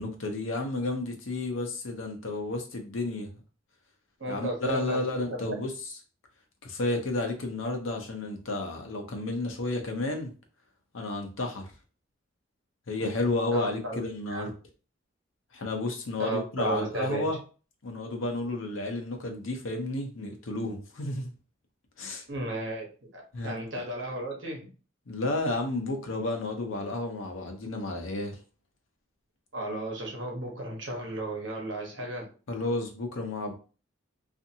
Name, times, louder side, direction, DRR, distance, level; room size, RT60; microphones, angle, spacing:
voice 1, 0.0-3.3 4.3-5.7 6.6-10.3 10.9-11.7 12.9-14.5 15.5-17.4 17.8-21.3 22.0-22.2 23.3-23.5 25.1-28.4 32.5-33.5, left 2 dB, 80° left, 0.7 m, -32 dB
voice 2, 4.2-5.6 13.5-14.0 14.3-14.5 16.2-17.3 22.3-22.9 23.1-24.7 29.5-32.3, right 2 dB, 65° right, 1.0 m, -34 dB
2.6 x 2.5 x 2.7 m
head